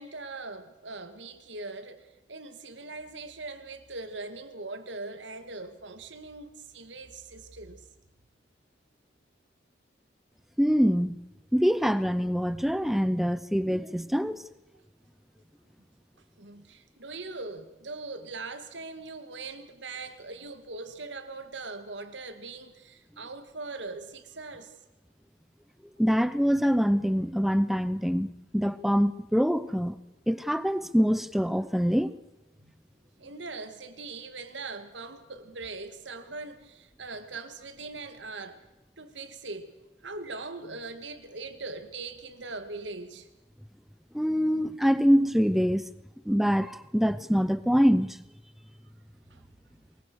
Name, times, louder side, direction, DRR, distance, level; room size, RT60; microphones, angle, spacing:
voice 1, 0.0-7.9 16.4-24.7 32.6-32.7 33.2-38.6 39.0-39.7 40.0-43.3 49.3-49.4, right 3 dB, 90° right, 2.5 m, -41 dB
voice 2, 10.6-11.2 11.5-14.5 26.0-30.0 30.3-32.1 44.1-45.9 46.3-48.2, equal, ahead, 0.8 m, -24 dB
23.0 x 21.0 x 6.5 m
head